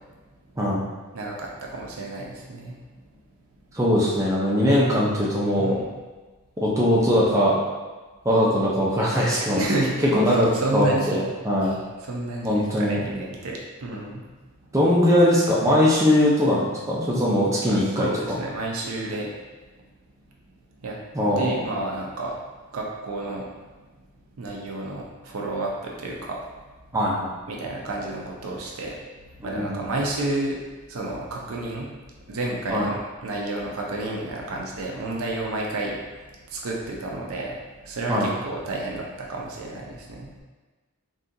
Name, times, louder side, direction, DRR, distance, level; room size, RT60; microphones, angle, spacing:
voice 1, 1.1-2.8 5.6-5.9 9.5-10.0 10.3-11.2 11.6-14.3 17.7-19.3 20.8-21.0 21.4-22.4 22.7-23.5 24.4-26.4 27.5-29.0 29.4-30.6 30.9-31.9 32.3-36.0 36.5-37.6 37.8-40.3, right 2 dB, 65° right, -2 dB, 0.5 m, -30 dB
voice 2, 3.7-5.8 6.6-7.6 8.2-9.6 10.1-11.7 12.4-13.0 14.7-18.4 21.1-21.4 26.9-27.3 29.4-29.8 32.7-32.9 38.1-38.3, equal, 15° right, -6 dB, 0.5 m, -21 dB
3.7 x 2.4 x 2.7 m, 1.3 s
head